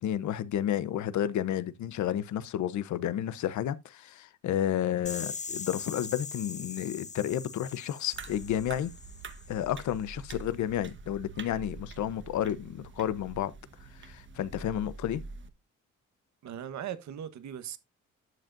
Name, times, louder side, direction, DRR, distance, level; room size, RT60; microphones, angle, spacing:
voice 1, 0.0-8.9 9.5-13.5 14.0-15.2, left 11 dB, 70° left, 0.9 m, -31 dB
sound 1, 5.1-9.8, left 5 dB, 25° left, 0.8 m, -41 dB
sound 2, 8.1-15.5, right 4 dB, 40° right, 1.2 m, -45 dB
voice 2, 16.4-17.8, right 10 dB, 65° right, 1.2 m, -39 dB
12.0 x 7.6 x 2.6 m
cardioid pair, 90°, 30 cm